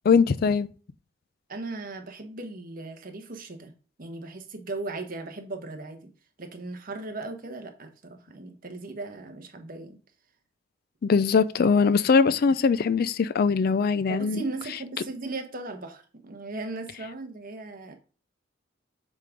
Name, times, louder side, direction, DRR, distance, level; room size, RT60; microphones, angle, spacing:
voice 1, 0.0-0.7 11.0-14.4, left 5 dB, 50° left, 0.4 m, -21 dB
voice 2, 1.5-3.7 4.0-6.1 6.4-10.0 14.1-18.0, right 3 dB, 45° right, 1.2 m, -37 dB
7.5 x 3.7 x 5.0 m
head